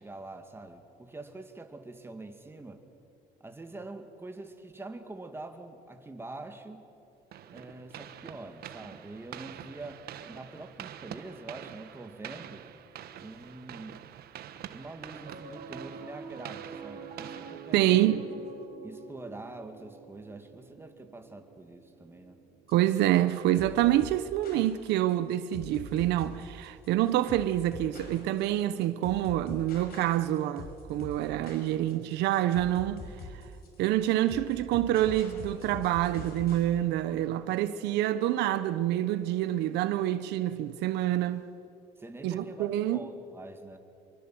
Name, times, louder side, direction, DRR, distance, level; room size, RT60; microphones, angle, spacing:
voice 1, 0.0-2.8 3.4-6.8 7.5-12.7 13.2-14.0 14.7-18.2 18.8-22.4 42.0-43.8, right 2 dB, 15° right, 2.4 m, -45 dB
sound 1, 7.3-18.6, right 10 dB, 65° right, 1.3 m, -46 dB
Piano, 15.2-25.7, right 5 dB, 45° right, 3.8 m, -48 dB
voice 2, 17.7-18.2 22.7-33.0 33.8-41.5 42.2-43.0, right 13 dB, 85° right, 0.9 m, -27 dB
sound 2, 22.7-36.7, left 3 dB, 65° left, 5.4 m, -45 dB
26.0 x 23.5 x 7.8 m
cardioid pair, 110°, 17 cm